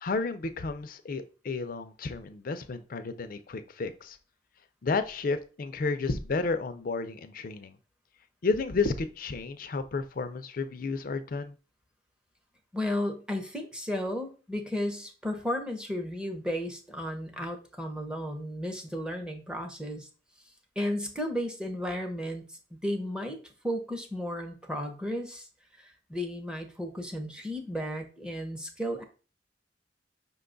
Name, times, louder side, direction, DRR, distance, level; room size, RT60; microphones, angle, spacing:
voice 1, 0.0-4.2 4.8-7.8 8.4-11.6, left 4 dB, 55° left, 9 dB, 0.5 m, -32 dB
voice 2, 12.7-20.1 20.8-23.4 23.6-25.5 25.8-29.0, equal, 5° right, 3 dB, 0.7 m, -34 dB
5.6 x 2.3 x 3.8 m, 0.35 s
head